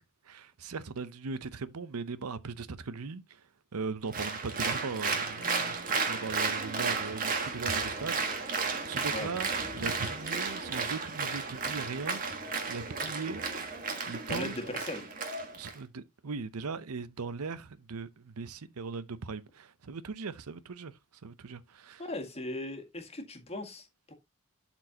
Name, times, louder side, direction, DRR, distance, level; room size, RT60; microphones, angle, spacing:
voice 1, 0.0-3.4 3.7-8.6 8.8-12.4 12.7-13.4 14.1-14.5 15.6-20.9 21.2-22.0, right 4 dB, 90° right, 0.7 m, -39 dB
Applause, 4.1-15.7, right 4 dB, 40° right, 1.5 m, -33 dB
voice 2, 14.3-15.1 22.0-24.1, left 1 dB, 25° left, 1.8 m, -38 dB
12.0 x 4.4 x 2.8 m
head